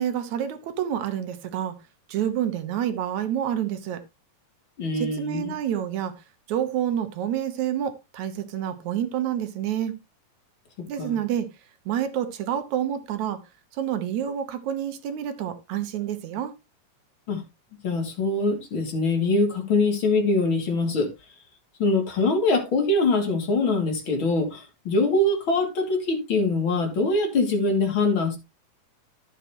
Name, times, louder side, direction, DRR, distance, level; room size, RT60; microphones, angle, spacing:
voice 1, 0.0-1.8 2.1-4.0 4.9-6.1 6.5-10.0 10.9-11.5 11.9-13.4 13.7-16.5, right 10 dB, 75° right, 2.4 m, -28 dB
voice 2, 4.8-5.5 10.8-11.2 17.3-17.4 17.8-21.1 21.8-28.4, left 3 dB, 45° left, 3.0 m, -23 dB
11.5 x 7.4 x 3.0 m
omnidirectional pair, 3.4 m